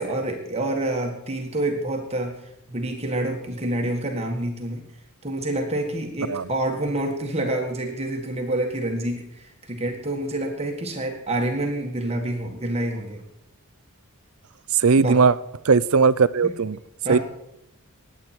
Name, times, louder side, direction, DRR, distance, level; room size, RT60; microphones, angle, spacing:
voice 1, 0.0-2.3 2.7-4.8 5.2-13.2 14.9-15.2 16.4-16.5 17.0-17.2, right 1 dB, 30° right, 2 dB, 1.7 m, -27 dB
voice 2, 14.7-15.3 15.6-16.8 17.1-17.2, right 5 dB, 70° right, 17 dB, 0.6 m, -18 dB
20.5 x 8.7 x 4.5 m, 0.83 s
head